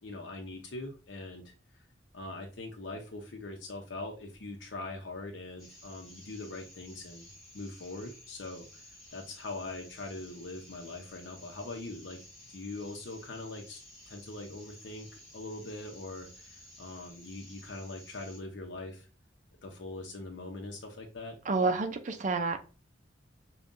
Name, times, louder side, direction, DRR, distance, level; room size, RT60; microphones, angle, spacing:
voice 1, 0.0-1.8 2.1-7.3 7.5-8.8 9.1-12.2 12.5-13.8 14.1-15.1 15.3-19.1 19.6-21.4, left 2 dB, 80° left, 2 dB, 0.7 m, -42 dB
sound 1, 5.6-18.4, left 1 dB, ahead, 1.8 m, -54 dB
voice 2, 21.5-22.6, right 4 dB, 45° right, 7 dB, 0.5 m, -29 dB
5.2 x 2.3 x 2.5 m, 0.34 s
head